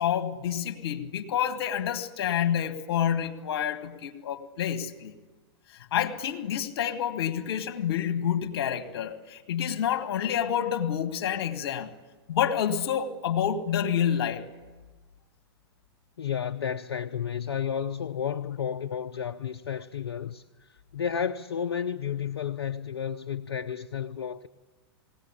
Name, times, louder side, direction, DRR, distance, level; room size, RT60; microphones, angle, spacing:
voice 1, 0.0-5.1 5.9-11.9 12.3-14.5, left 9 dB, 65° left, 1.9 m, -28 dB
voice 2, 16.2-24.5, left 8 dB, 80° left, 0.7 m, -32 dB
20.5 x 17.5 x 9.8 m
hypercardioid pair, 110°, 14 cm